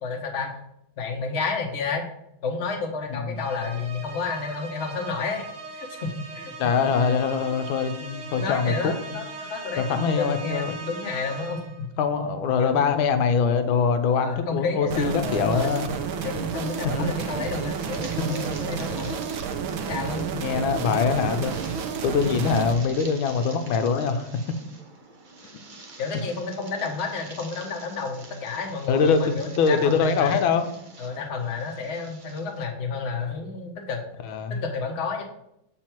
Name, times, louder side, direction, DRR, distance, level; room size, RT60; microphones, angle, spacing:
voice 1, 0.0-0.5 1.0-2.0 2.4-5.4 5.7-6.5 8.3-11.9 12.6-12.8 14.2-15.7 16.2-19.2 19.6-20.3 26.0-30.4 31.0-34.0 34.5-35.2, left 4 dB, 40° left, 2 dB, 1.1 m, -31 dB
sound 1, 3.4-11.9, right 3 dB, 50° right, 0.9 m, -40 dB
voice 2, 6.6-9.2 9.8-10.8 12.0-15.9 16.8-16.9 18.2-18.4 20.3-21.5 22.0-24.3 28.9-30.7 34.2-34.6, left 5 dB, 75° left, 9 dB, 1.5 m, -23 dB
sound 2, 14.9-22.7, right 6 dB, 75° right, 1.5 m, -31 dB
sound 3, 17.0-32.6, right 3 dB, 90° right, 0.4 m, -47 dB
7.4 x 4.6 x 4.5 m, 0.80 s
omnidirectional pair, 2.4 m